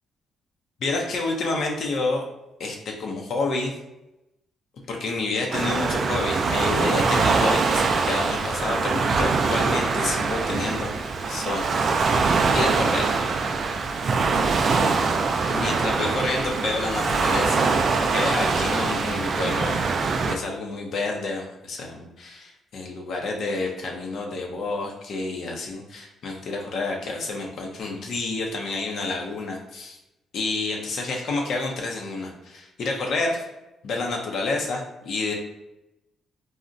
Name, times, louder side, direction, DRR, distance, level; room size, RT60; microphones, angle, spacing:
voice 1, 0.8-2.2 2.6-3.7 4.9-11.8 12.5-13.1 15.5-17.7 18.1-19.8 20.3-30.0 30.3-33.5 33.8-35.3, left 3 dB, 65° left, 0 dB, 0.6 m, -29 dB
Waves surf, 5.5-20.4, right 4 dB, 50° right, 0.3 m, -23 dB
3.8 x 2.1 x 2.5 m, 0.94 s
cardioid pair, 90°, 0 cm